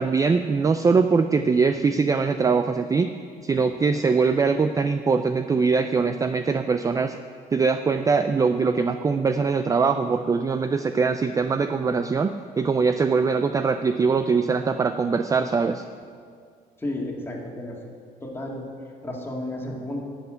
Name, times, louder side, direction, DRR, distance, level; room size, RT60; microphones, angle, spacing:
voice 1, 0.0-3.1 3.4-7.2 7.5-15.8, right 5 dB, 20° right, 8 dB, 0.4 m, -22 dB
voice 2, 16.8-17.8 18.2-18.6 19.0-20.0, left 1 dB, 15° left, -1 dB, 2.1 m, -32 dB
11.5 x 5.7 x 8.9 m, 2.1 s
cardioid pair, 110°, 17 cm